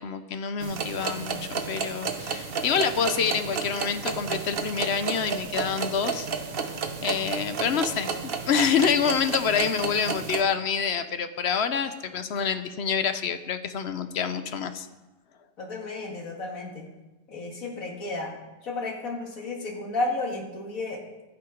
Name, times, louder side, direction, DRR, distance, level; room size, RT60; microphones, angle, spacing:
voice 1, 0.0-6.3 7.0-8.1 8.5-14.9, left 6 dB, 60° left, 11 dB, 0.8 m, -27 dB
sound 1, 0.6-10.4, right 5 dB, 50° right, 1.0 m, -32 dB
voice 2, 15.6-16.9 17.3-18.4 18.6-21.0, left 2 dB, 85° left, 0 dB, 2.2 m, -32 dB
12.5 x 8.7 x 5.1 m, 1.1 s
omnidirectional pair, 1.4 m